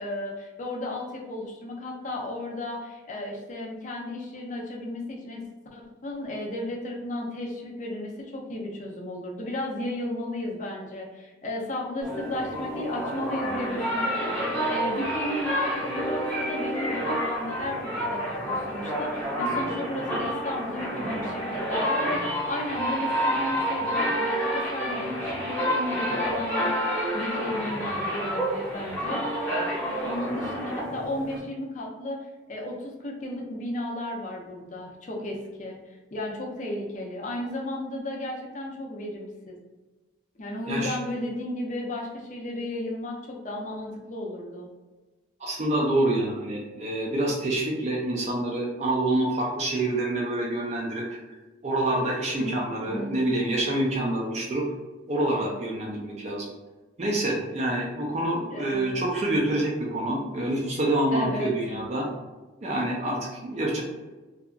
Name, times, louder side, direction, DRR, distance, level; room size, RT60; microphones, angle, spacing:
voice 1, 0.0-5.4 5.7-26.8 27.1-29.3 30.0-39.6 40.4-44.7 52.4-52.6 52.8-53.2 58.5-59.1 61.1-61.8, left 1 dB, 40° left, -1 dB, 0.5 m, -34 dB
sound 1, 12.0-31.4, equal, 10° left, 0.9 m, -29 dB
voice 2, 45.4-51.2 51.6-54.7 55.1-56.5 57.0-62.1 62.6-63.8, right 1 dB, 35° right, -2 dB, 0.4 m, -27 dB
2.7 x 2.3 x 2.3 m, 1.2 s
head